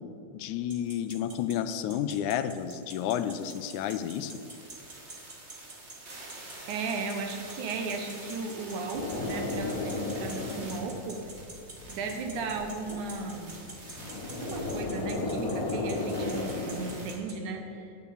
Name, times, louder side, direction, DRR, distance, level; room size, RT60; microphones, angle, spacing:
voice 1, 0.3-4.3, left 10 dB, 85° left, 12 dB, 2.0 m, -31 dB
sound 1, 0.7-17.3, right 3 dB, 50° right, 0.5 m, -45 dB
sound 2, 0.9-1.0 1.2-17.2, right 2 dB, 30° right, 1.6 m, -47 dB
voice 2, 6.3-11.2 11.9-13.7 14.4-17.9, right 4 dB, 85° right, 4 dB, 2.7 m, -36 dB
sound 3, 8.9-17.1, left 3 dB, 70° left, 0.8 m, -35 dB
10.5 x 8.2 x 7.0 m, 2.5 s
omnidirectional pair, 3.4 m